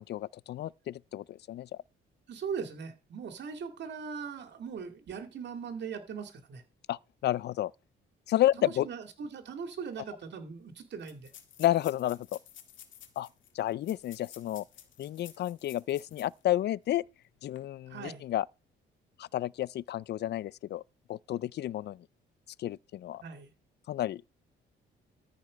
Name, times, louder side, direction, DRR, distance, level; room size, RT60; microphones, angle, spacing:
voice 1, 0.0-1.7 6.9-7.7 8.3-8.9 11.6-12.4 13.2-13.3 13.5-14.6 15.0-17.0 17.4-18.5 19.2-20.8 21.1-22.1 22.6-23.2 23.9-24.2, left 13 dB, 60° left, 0.4 m, -31 dB
voice 2, 2.3-6.6 8.6-11.3 17.9-18.3 23.2-23.5, right 6 dB, 60° right, 2.4 m, -40 dB
sound 1, 9.9-10.0 10.2-10.3 11.0-16.4 16.8-16.9 17.4-17.6, left 10 dB, 75° left, 1.9 m, -53 dB
14.0 x 5.3 x 5.1 m
cardioid pair, 90°, 20 cm